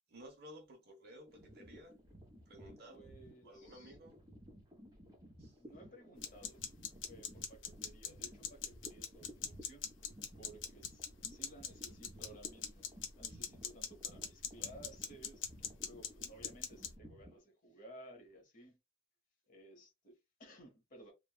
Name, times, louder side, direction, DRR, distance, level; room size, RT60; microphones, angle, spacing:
voice 1, 0.1-2.0 2.5-3.1 3.4-4.2 5.4-5.6 13.3-13.4, equal, 50° right, 1.0 m, -55 dB
sound 1, 1.3-17.4, equal, 20° right, 1.1 m, -57 dB
voice 2, 2.9-4.0 5.6-6.6 7.1-9.9 10.4-18.8 19.5-21.1, right 1 dB, 40° left, 1.0 m, -57 dB
sound 2, 6.2-16.9, left 8 dB, 65° left, 0.6 m, -45 dB
3.3 x 2.4 x 2.3 m
head